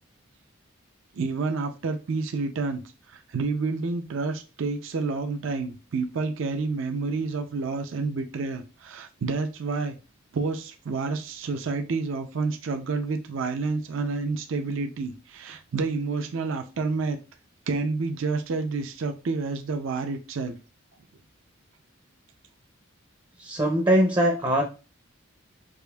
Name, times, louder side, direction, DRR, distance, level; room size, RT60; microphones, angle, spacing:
voice 1, 1.1-2.8 3.1-10.0 10.3-17.2 17.7-20.6, right 4 dB, 70° right, 6 dB, 0.4 m, -29 dB
voice 2, 23.4-24.6, equal, 20° right, 1 dB, 0.5 m, -21 dB
5.0 x 2.5 x 2.2 m, 0.31 s
head